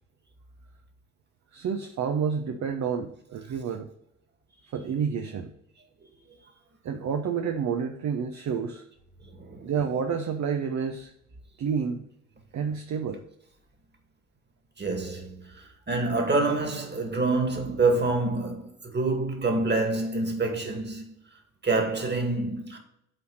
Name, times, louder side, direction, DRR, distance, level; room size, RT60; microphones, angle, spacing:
voice 1, 1.5-3.9 4.5-5.5 6.8-8.8 9.6-11.1 11.6-12.0 12.5-13.2, right 6 dB, 50° right, 0.9 m, -29 dB
voice 2, 9.3-9.7 14.8-21.0 21.6-22.8, right 3 dB, 30° right, 2.3 m, -27 dB
7.9 x 4.3 x 6.5 m
hypercardioid pair, 50°, 37 cm